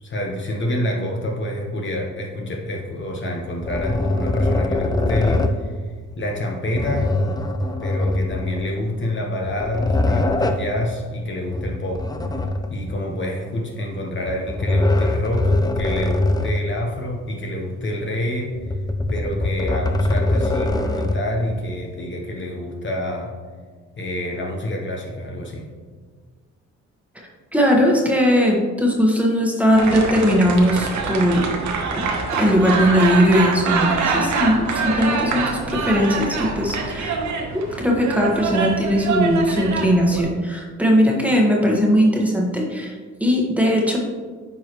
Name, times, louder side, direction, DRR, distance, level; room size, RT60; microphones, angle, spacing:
voice 1, 0.0-5.7 6.2-7.1 7.8-12.1 12.7-18.5 19.1-23.3 24.0-25.6, left 1 dB, 40° left, 0 dB, 1.1 m, -27 dB
sound 1, 3.6-5.7 6.7-8.8 9.4-10.7 11.5-13.0 14.2-16.7 17.1-17.2 18.5-21.3, left 2 dB, 15° left, 0.5 m, -22 dB
voice 2, 27.5-31.5 32.0-32.1 32.3-37.3 37.5-42.9 43.2-44.0, equal, 5° right, -2 dB, 1.4 m, -19 dB
sound 2, 29.7-40.2, right 4 dB, 70° right, 1.1 m, -25 dB
9.0 x 4.7 x 3.1 m, 1.5 s
cardioid pair, 90°, 30 cm